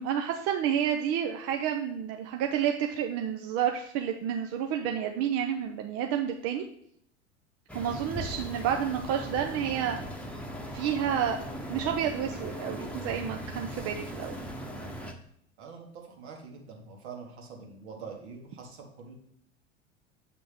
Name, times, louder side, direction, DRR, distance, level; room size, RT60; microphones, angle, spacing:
voice 1, 0.0-6.6 7.7-10.0 10.7-11.4 11.7-14.4, right 9 dB, 45° right, 4 dB, 0.8 m, -30 dB
sound 1, 7.7-15.1, equal, 5° left, 1.1 m, -39 dB
voice 2, 15.6-19.1, right 5 dB, 65° right, 1 dB, 2.1 m, -45 dB
7.4 x 5.9 x 3.5 m, 0.70 s
hypercardioid pair, 85°, 35 cm